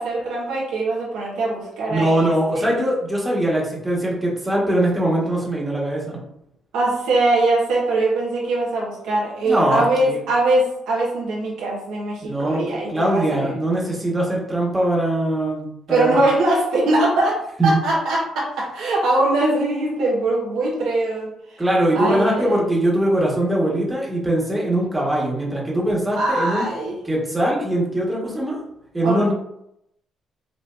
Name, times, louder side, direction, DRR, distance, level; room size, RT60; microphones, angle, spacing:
voice 1, 0.0-2.8 6.7-13.5 15.9-21.6 21.9-22.6 26.1-26.9 29.0-29.3, right 2 dB, 90° right, -4 dB, 1.2 m, -22 dB
voice 2, 1.9-6.2 9.4-10.2 12.2-16.2 17.6-17.8 21.6-26.7 27.0-28.6 28.9-29.3, right 1 dB, 10° right, -4 dB, 1.3 m, -21 dB
5.3 x 2.5 x 2.5 m, 0.79 s
cardioid pair, 90°, 0 cm